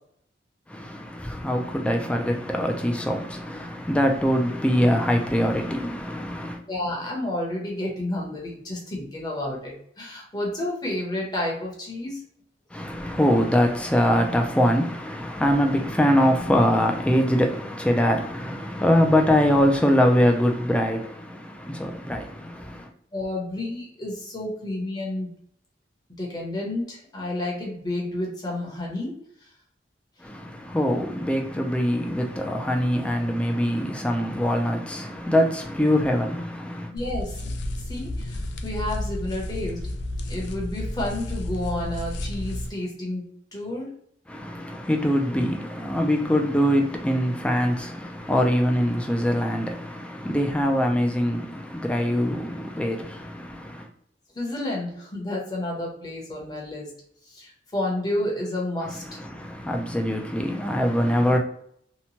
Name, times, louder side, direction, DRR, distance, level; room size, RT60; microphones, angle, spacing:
voice 1, 0.7-6.6 12.7-22.9 30.2-36.9 44.3-53.9 59.1-61.4, equal, 5° left, 0.3 m, -23 dB
voice 2, 6.7-12.2 23.1-25.3 26.1-29.1 29.4-29.5 36.9-39.8 40.3-43.9 54.3-56.9 57.3-59.2, left 1 dB, 25° left, 0.8 m, -30 dB
sound 1, 37.0-42.7, left 1 dB, 75° left, 0.4 m, -31 dB
2.9 x 2.2 x 2.7 m
head